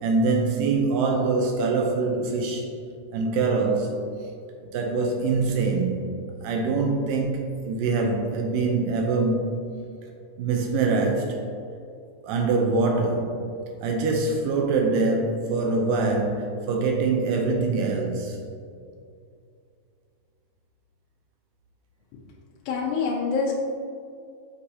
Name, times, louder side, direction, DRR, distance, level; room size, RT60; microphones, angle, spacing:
voice 1, 0.0-2.7 3.1-4.0 4.7-9.7 10.4-11.4 12.2-13.4 13.8-18.4, right 3 dB, 80° right, 2 dB, 2.2 m, -24 dB
voice 2, 22.7-23.5, left 5 dB, 85° left, -3 dB, 2.5 m, -25 dB
7.8 x 4.7 x 2.7 m, 2.4 s
omnidirectional pair, 4.1 m